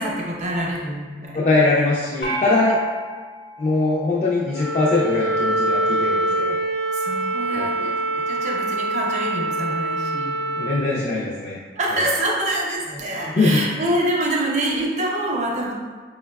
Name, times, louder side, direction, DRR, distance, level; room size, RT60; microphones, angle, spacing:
voice 1, 0.0-1.4 6.9-10.4 11.8-15.7, right 1 dB, 40° right, -2 dB, 0.5 m, -25 dB
voice 2, 1.3-2.8 3.6-6.6 7.5-7.7 10.6-11.6 13.4-13.6, left 2 dB, 40° left, -5 dB, 0.4 m, -21 dB
sound 1, 2.2-4.7, equal, 70° left, 0.8 m, -32 dB
Wind instrument woodwind instrument, 4.5-10.8, right 2 dB, 85° right, 0.5 m, -24 dB
4.5 x 2.2 x 2.2 m, 1.4 s
head